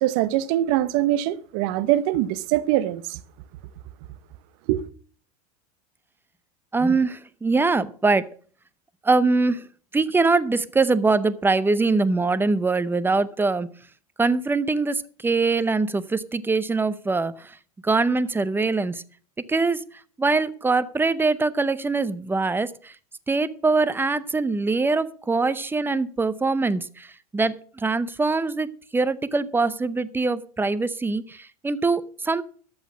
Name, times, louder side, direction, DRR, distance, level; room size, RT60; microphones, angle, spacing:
voice 1, 0.0-3.2 4.7-4.8, right 14 dB, 60° right, 0.9 m, -23 dB
voice 2, 6.7-8.3 9.0-9.7 9.9-13.7 14.2-17.6 17.8-19.0 19.5-19.9 20.2-22.9 23.3-27.1 27.3-32.4, right 3 dB, 10° right, 0.7 m, -23 dB
13.0 x 6.4 x 6.1 m
supercardioid pair, 110°, 19 cm